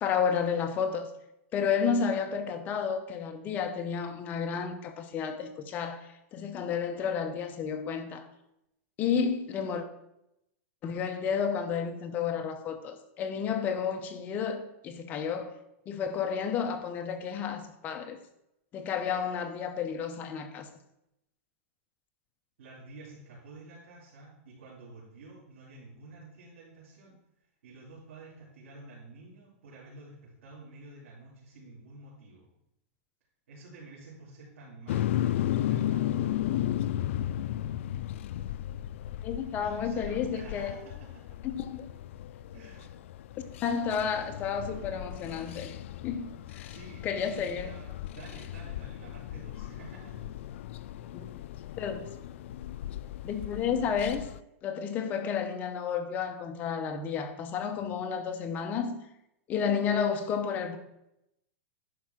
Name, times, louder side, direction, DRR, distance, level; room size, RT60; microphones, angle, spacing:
voice 1, 0.0-1.1 1.5-8.3 9.0-9.8 10.8-15.5 15.9-18.2 18.7-20.7 39.2-40.8 41.4-41.9 43.6-45.7 46.0-46.7 47.0-47.7 51.1-51.4 51.8-52.1 53.2-54.2 54.6-59.0 59.5-60.8, left 7 dB, 25° left, 0.8 m, -31 dB
voice 2, 22.6-27.2 27.6-32.5 33.5-36.4 39.6-41.4 42.5-42.9 46.5-50.3 51.0-51.3 57.8-57.9, right 3 dB, 75° right, 4.0 m, -50 dB
sound 1, 34.9-54.4, left 12 dB, 65° left, 0.3 m, -35 dB
11.0 x 4.8 x 5.9 m
supercardioid pair, 165°, 7 cm